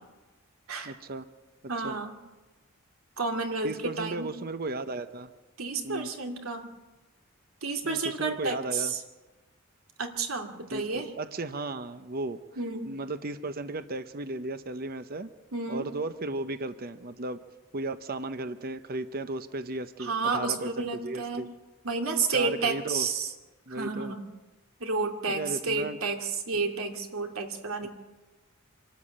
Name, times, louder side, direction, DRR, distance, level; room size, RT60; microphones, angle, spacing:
voice 1, 0.8-1.3 1.8-2.0 3.6-5.3 5.8-6.1 7.8-8.9 10.7-12.4 12.9-15.3 15.7-17.4 17.7-21.5 22.3-23.1 23.7-24.2 25.3-26.0 27.8-27.9, right 2 dB, 45° right, 11 dB, 0.8 m, -35 dB
voice 2, 1.7-2.2 3.2-4.3 5.6-6.7 7.6-9.0 10.0-11.1 12.6-13.0 15.5-15.9 20.0-21.4 21.8-23.3 23.7-24.3 24.8-27.9, right 4 dB, 80° right, 3 dB, 2.5 m, -31 dB
25.5 x 13.0 x 8.6 m, 1.2 s
head